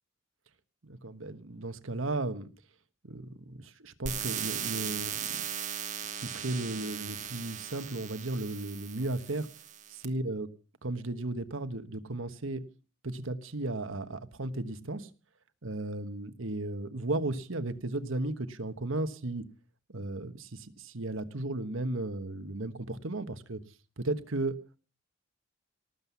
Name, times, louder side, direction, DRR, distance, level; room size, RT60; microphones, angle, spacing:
voice 1, 0.8-2.5 3.0-5.5 6.2-9.5 9.9-10.5 10.8-12.6 13.0-15.1 15.6-19.4 19.9-23.6 24.0-24.6, right 2 dB, 75° right, 10 dB, 1.3 m, -35 dB
sound 1, 4.1-10.1, right 9 dB, 35° right, 1.3 m, -38 dB
18.5 x 7.9 x 7.0 m, 0.36 s
head